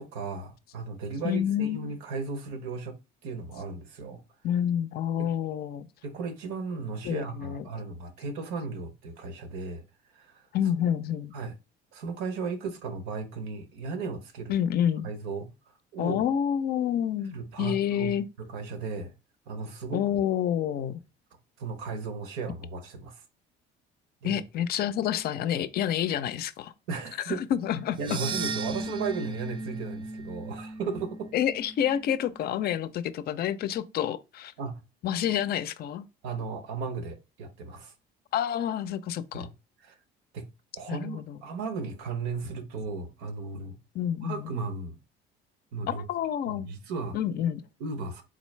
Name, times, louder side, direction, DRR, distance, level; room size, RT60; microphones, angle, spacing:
voice 1, 0.0-3.0 3.2-4.2 5.2-5.3 6.0-9.8 10.1-10.5 11.3-11.6 11.9-14.5 15.0-15.5 15.9-16.2 17.3-19.1 19.5-20.2 21.6-23.2 24.2-24.4 26.9-27.5 28.0-31.3 34.6-34.8 36.2-37.9 39.3-39.5 39.8-39.9 40.3-40.5 40.7-43.8 44.2-45.0 45.7-46.0 46.5-47.2 47.8-48.2, right 4 dB, 85° right, 0.9 m, -35 dB
voice 2, 1.2-1.8 4.4-5.9 7.0-7.6 10.5-11.3 14.5-15.1 16.0-18.3 19.9-21.0 24.2-26.7 27.5-28.0 31.3-34.5 35.0-36.1 38.3-39.5 40.9-41.4 44.0-44.5 45.9-46.7 47.1-47.6, left 10 dB, 50° left, 0.4 m, -28 dB
sound 1, 27.9-32.3, right 3 dB, 25° right, 0.4 m, -36 dB
3.9 x 3.1 x 3.1 m
cardioid pair, 105°, 20 cm